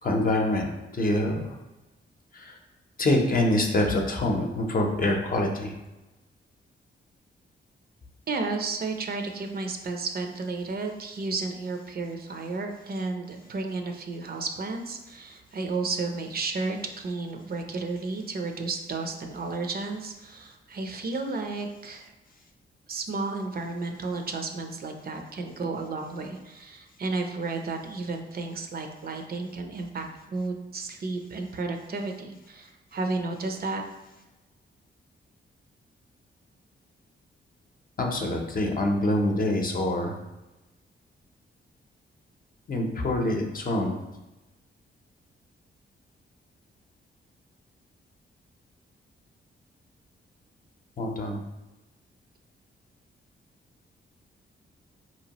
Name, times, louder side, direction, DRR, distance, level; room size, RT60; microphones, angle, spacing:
voice 1, 0.0-1.6 2.3-2.6 3.0-5.7 38.0-40.1 42.7-44.0 51.0-51.4, left 1 dB, 45° left, 2 dB, 0.7 m, -25 dB
voice 2, 8.3-22.1 22.9-30.1 30.3-33.8, right 3 dB, 50° right, 4 dB, 0.5 m, -32 dB
4.5 x 2.9 x 2.9 m, 1.0 s
wide cardioid pair, 110°, 21 cm